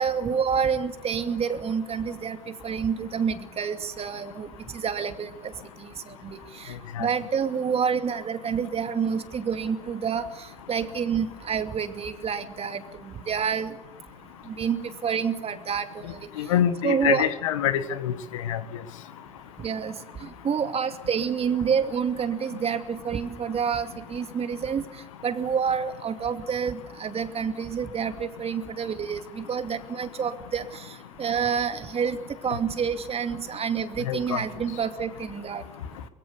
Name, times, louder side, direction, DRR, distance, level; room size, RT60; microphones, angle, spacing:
voice 1, 0.0-4.5 4.8-5.5 6.1-6.4 6.6-6.7 7.0-10.3 10.7-13.7 14.6-16.2 16.8-17.3 19.6-19.9 20.4-24.8 25.2-30.6 31.2-32.2 32.4-35.6, right 7 dB, 40° right, 8 dB, 2.5 m, -28 dB
voice 2, 16.4-18.6 34.1-34.4, left 10 dB, 80° left, 12 dB, 1.8 m, -25 dB
24.5 x 22.0 x 7.0 m, 0.96 s
hypercardioid pair, 60°, 16 cm